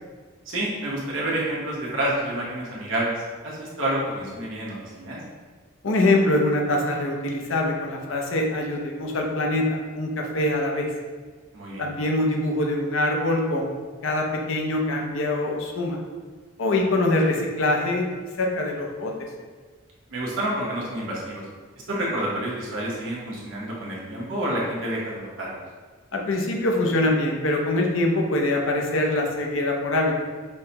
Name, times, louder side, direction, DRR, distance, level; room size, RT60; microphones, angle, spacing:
voice 1, 0.5-3.1 3.4-5.2 11.5-11.8 20.1-21.4 21.9-25.6, right 1 dB, 75° right, -5 dB, 1.0 m, -28 dB
voice 2, 5.8-10.9 11.8-13.8 14.0-16.0 16.6-18.1 18.4-19.1 26.1-30.1, left 1 dB, 75° left, 0 dB, 0.6 m, -24 dB
5.5 x 2.2 x 2.8 m, 1.5 s
head